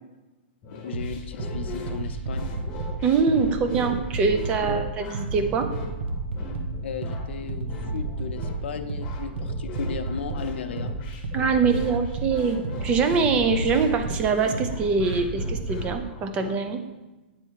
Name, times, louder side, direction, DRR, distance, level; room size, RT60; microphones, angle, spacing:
sound 1, 0.6-16.6, left 4 dB, 20° left, 1.0 m, -40 dB
voice 1, 0.7-2.5 4.7-4.8 6.8-10.9, left 6 dB, 80° left, 8 dB, 0.6 m, -36 dB
sound 2, 0.9-15.9, right 2 dB, 90° right, 0.9 m, -32 dB
voice 2, 3.0-5.7 11.3-16.8, right 5 dB, 20° right, 7 dB, 0.4 m, -24 dB
8.9 x 3.4 x 4.6 m, 1.1 s
supercardioid pair, 170°, 6 cm